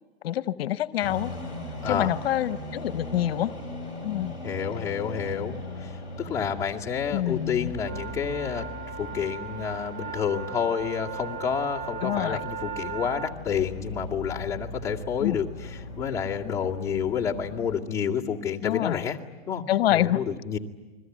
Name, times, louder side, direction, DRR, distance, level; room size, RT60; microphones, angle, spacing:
voice 1, 0.2-1.3 1.9-3.5 4.0-4.3 7.1-7.7 12.0-12.5 15.2-15.4 18.6-19.0 19.7-20.2, left 13 dB, 70° left, 13 dB, 0.9 m, -26 dB
sound 1, 1.0-17.8, left 1 dB, 15° right, 6.3 m, -39 dB
voice 2, 4.4-19.2 19.5-19.6 19.9-20.6, left 7 dB, 10° left, -6 dB, 2.1 m, -29 dB
sound 2, 7.7-13.4, right 8 dB, 35° right, 1.0 m, -37 dB
29.5 x 21.5 x 9.3 m, 1.2 s
supercardioid pair, 160°, 31 cm